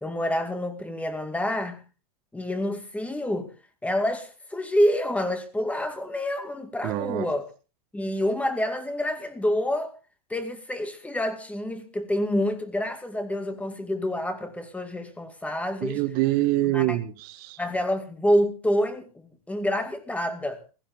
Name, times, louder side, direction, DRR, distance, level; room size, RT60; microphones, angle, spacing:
voice 1, 0.0-1.8 2.3-3.5 3.8-7.5 7.9-9.9 10.3-16.0 16.7-17.0 17.6-20.7, left 1 dB, 5° left, 2.2 m, -27 dB
voice 2, 6.8-7.3 15.8-17.6, right 16 dB, 50° right, 1.2 m, -25 dB
16.0 x 15.5 x 3.6 m
hypercardioid pair, 125°, 20 cm